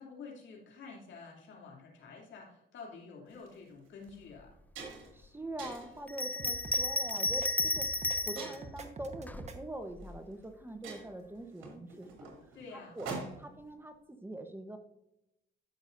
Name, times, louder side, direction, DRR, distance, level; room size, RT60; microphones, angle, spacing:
voice 1, 0.0-4.6 12.5-13.0, left 4 dB, 70° left, -1 dB, 2.9 m, -49 dB
sound 1, 3.3-3.5 4.0-4.2 4.4-5.2 5.6-6.0 6.7-7.0 8.4-8.9 10.0-10.1 10.4-10.5 10.8-13.6, right 3 dB, 80° right, 2.6 m, -44 dB
voice 2, 5.1-12.3 12.7-13.1 13.4-14.8, right 1 dB, 10° right, 7 dB, 1.0 m, -44 dB
Bell, 6.1-8.5 9.3-10.2, left 2 dB, 10° left, 0.3 m, -33 dB
sound 2, 6.4-6.8 7.2-8.2 8.5-9.6, right 3 dB, 35° right, 1.2 m, -45 dB
13.5 x 6.1 x 2.6 m, 0.82 s
cardioid pair, 90°, 20 cm